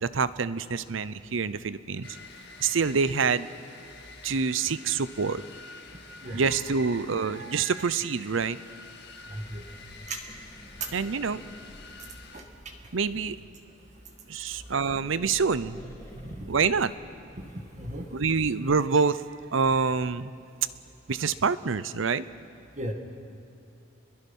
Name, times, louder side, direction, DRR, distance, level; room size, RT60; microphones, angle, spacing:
voice 1, 0.0-2.1 2.6-3.5 4.2-5.4 6.3-8.6 10.9-11.4 12.9-13.4 14.3-16.9 18.1-19.2 19.5-20.3 21.1-22.3, right 5 dB, 80° right, 15 dB, 0.7 m, -26 dB
sound 1, 2.0-12.4, left 3 dB, 55° left, 1.9 m, -48 dB
sound 2, 9.1-13.5 14.4-18.1, equal, 15° left, 3.4 m, -51 dB
voice 2, 9.3-9.6 10.1-10.2 10.8-10.9 12.3-12.4 16.3-16.5 17.5-18.1 22.8-22.9, right 2 dB, 35° right, 4 dB, 2.0 m, -35 dB
29.0 x 22.0 x 5.5 m, 2.6 s
head